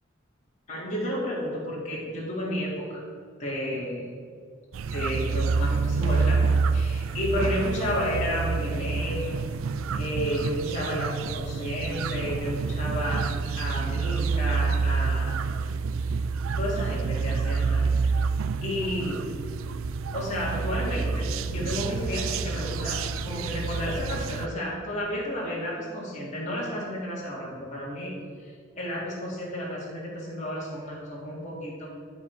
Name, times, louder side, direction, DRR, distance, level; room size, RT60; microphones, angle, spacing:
voice 1, 0.7-3.0 3.4-4.1 4.9-6.4 6.7-9.4 9.9-15.7 16.6-18.1 18.6-19.3 20.1-28.1 28.4-31.9, equal, 35° left, -6 dB, 2.0 m, -32 dB
sound 1, 4.7-24.5, right 4 dB, 75° right, 0.4 m, -28 dB
12.0 x 4.9 x 4.6 m, 2.2 s
head